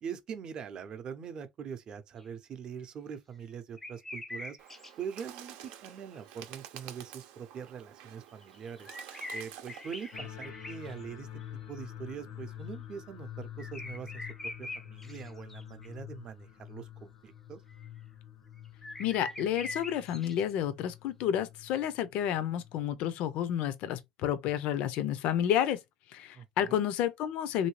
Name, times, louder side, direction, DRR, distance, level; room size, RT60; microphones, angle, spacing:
voice 1, 0.0-4.6 5.0-8.9 9.3-11.4 11.7-14.3 14.6-17.6 26.3-26.9, right 7 dB, 35° right, 0.6 m, -43 dB
sound 1, 2.2-2.3 3.8-4.9 5.2-5.3 5.6-5.7 6.1-6.2 8.4-11.0 11.4-11.5 13.6-15.9 17.7-17.9 18.6-20.6, left 2 dB, 10° left, 0.4 m, -43 dB
Bird, 4.6-10.2, right 11 dB, 85° right, 0.6 m, -50 dB
sound 2, 10.1-22.8, left 11 dB, 85° left, 1.0 m, -47 dB
voice 2, 19.0-25.8 26.1-27.7, left 10 dB, 65° left, 0.5 m, -30 dB
3.1 x 2.6 x 3.1 m
cardioid pair, 155°, 2 cm